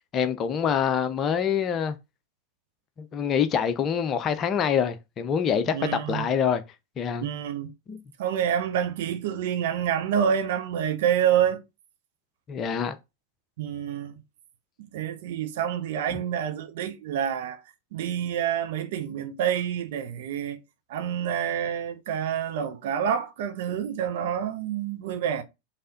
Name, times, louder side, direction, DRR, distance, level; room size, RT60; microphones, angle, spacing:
voice 1, 0.1-2.0 3.0-6.6 7.0-7.3 7.9-8.0 12.5-13.0, left 7 dB, 30° left, 0.7 m, -25 dB
voice 2, 5.7-6.2 7.2-7.7 8.2-11.6 13.6-14.2 14.8-17.6 17.9-20.6 20.9-25.4, right 9 dB, 55° right, 1.0 m, -27 dB
5.6 x 3.5 x 5.1 m
figure-of-eight pair, 90°, 0 cm